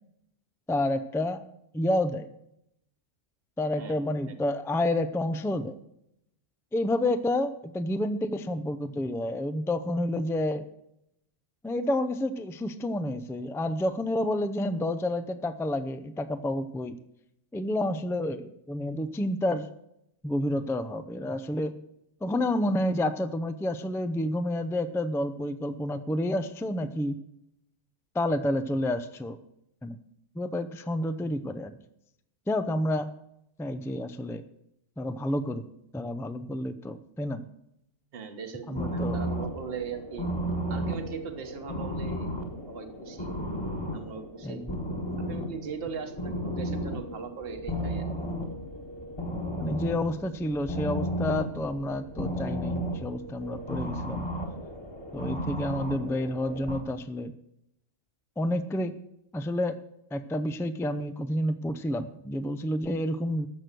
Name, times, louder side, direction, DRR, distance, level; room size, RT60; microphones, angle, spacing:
voice 1, 0.7-1.4 1.7-2.3 3.6-5.8 6.7-10.6 11.6-17.0 17.5-19.7 20.2-21.7 22.2-27.2 28.1-29.4 29.8-30.0 30.4-31.8 32.5-33.1 33.6-34.4 35.0-35.7 35.9-37.4 38.7-39.2 44.4-44.8 49.6-54.2 55.1-57.3 58.4-59.0 59.3-59.8 60.1-63.5, left 1 dB, 5° left, 10 dB, 0.4 m, -29 dB
voice 2, 38.1-40.3 40.7-42.3 42.7-43.3 43.9-44.6 45.2-48.3, right 6 dB, 50° right, 6 dB, 1.4 m, -39 dB
sound 1, 38.7-56.8, equal, 20° left, 1.6 m, -34 dB
14.5 x 6.2 x 6.8 m, 0.80 s
omnidirectional pair, 1.3 m